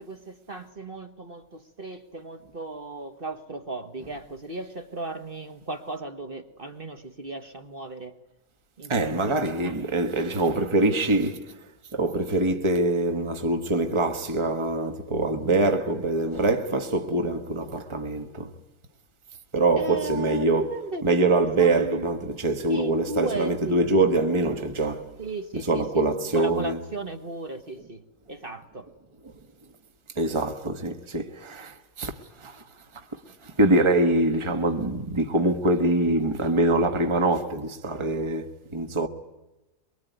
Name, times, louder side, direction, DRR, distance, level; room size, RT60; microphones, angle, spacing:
voice 1, 0.0-8.2 8.8-9.4 9.6-9.7 19.7-22.1 22.7-23.8 25.2-25.9 26.3-28.9, right 2 dB, 40° right, 1.7 m, -36 dB
voice 2, 8.9-18.5 19.5-25.2 25.5-26.8 30.1-32.6 32.9-39.1, right 2 dB, 20° right, 1.6 m, -24 dB
24.0 x 23.5 x 9.4 m
omnidirectional pair, 1.5 m